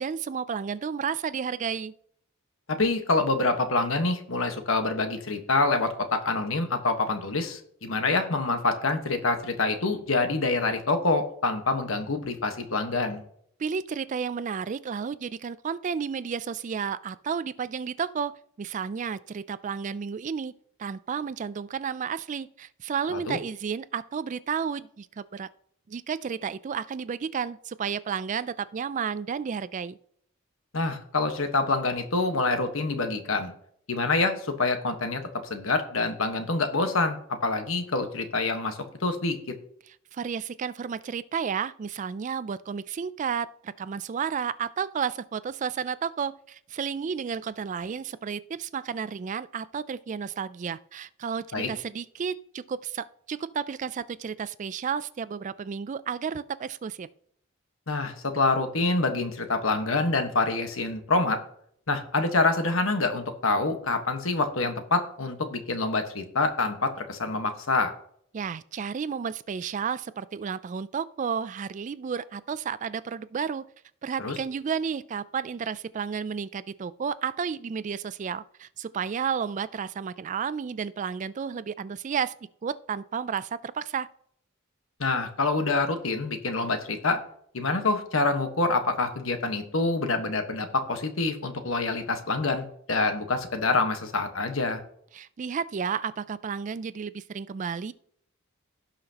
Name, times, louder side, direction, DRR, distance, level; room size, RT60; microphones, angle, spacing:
voice 1, 0.0-1.9 13.6-20.5 20.8-25.5 25.9-30.0 40.1-57.1 68.3-73.7 74.0-82.3 82.6-84.1 95.1-97.9, right 6 dB, 35° right, 0.3 m, -32 dB
voice 2, 2.7-13.2 23.1-23.4 30.7-33.5 33.9-35.2 35.5-39.5 51.5-51.7 57.9-61.4 61.9-67.9 74.2-74.4 85.0-87.2 87.5-94.8, left 3 dB, 70° left, 1.3 m, -26 dB
17.0 x 5.8 x 2.9 m
head